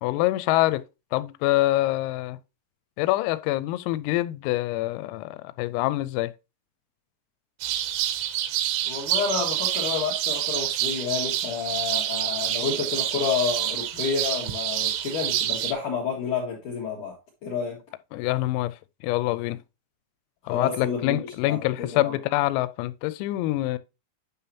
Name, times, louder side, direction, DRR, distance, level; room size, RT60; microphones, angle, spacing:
voice 1, 0.0-0.8 1.1-2.4 3.0-6.3 18.1-19.6 20.5-23.8, left 17 dB, 90° left, 3.3 m, -25 dB
sound 1, 7.6-15.7, right 12 dB, 80° right, 2.9 m, -27 dB
voice 2, 8.9-17.1 17.4-17.8 20.5-22.1, left 6 dB, 70° left, 1.9 m, -29 dB
9.6 x 5.6 x 2.8 m
omnidirectional pair, 6.0 m